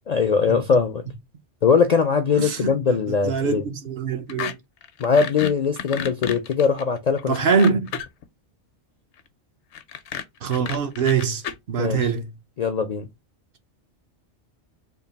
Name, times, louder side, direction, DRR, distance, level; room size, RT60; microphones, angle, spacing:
voice 1, 0.1-1.1 1.6-3.6 5.0-7.4 11.8-12.1 12.6-13.1, left 5 dB, 60° left, 0.4 m, -21 dB
voice 2, 2.4-3.0 3.2-4.6 7.3-7.9 10.4-11.4 11.7-12.3, right 5 dB, 60° right, 0.8 m, -23 dB
sound 1, 4.3-4.5 4.8-8.2 9.7-11.5, left 8 dB, 80° left, 0.9 m, -31 dB
3.6 x 2.4 x 3.9 m
omnidirectional pair, 1.2 m